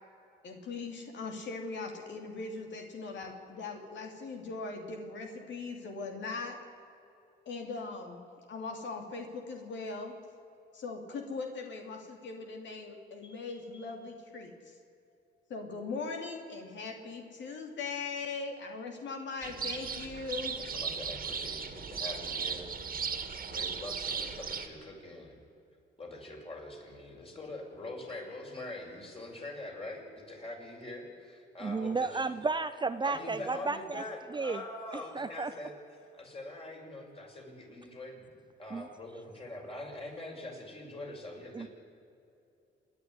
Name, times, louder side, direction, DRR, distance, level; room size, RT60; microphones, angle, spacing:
voice 1, 0.4-6.6 7.5-8.2 8.5-10.1 10.7-14.8 15.5-20.6, left 4 dB, 65° left, 3 dB, 2.9 m, -40 dB
sound 1, 19.4-24.7, right 6 dB, 45° right, 2.1 m, -37 dB
voice 2, 20.6-23.1 23.4-25.4 26.0-32.3 33.0-35.7 36.1-38.3 38.6-41.7, left 1 dB, 30° left, 0 dB, 6.1 m, -44 dB
voice 3, 31.6-34.0 34.3-34.6 35.1-35.5 38.7-38.9 41.5-41.7, right 4 dB, 25° right, 11 dB, 0.7 m, -32 dB
27.5 x 10.5 x 9.7 m, 2.7 s
cardioid pair, 90°, 20 cm